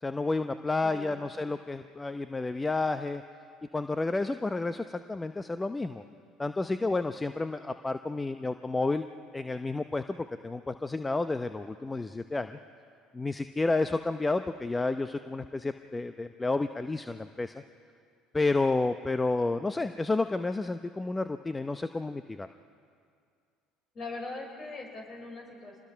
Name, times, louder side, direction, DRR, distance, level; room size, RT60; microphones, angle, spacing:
voice 1, 0.0-3.2 3.7-6.0 6.4-9.0 9.3-12.6 13.1-17.6 18.3-22.5, left 3 dB, 15° left, 9 dB, 0.7 m, -30 dB
voice 2, 0.8-1.3 23.9-25.8, left 3 dB, 40° left, 1 dB, 6.1 m, -41 dB
26.5 x 20.5 x 5.8 m, 2.3 s
hypercardioid pair, 70°, 0 cm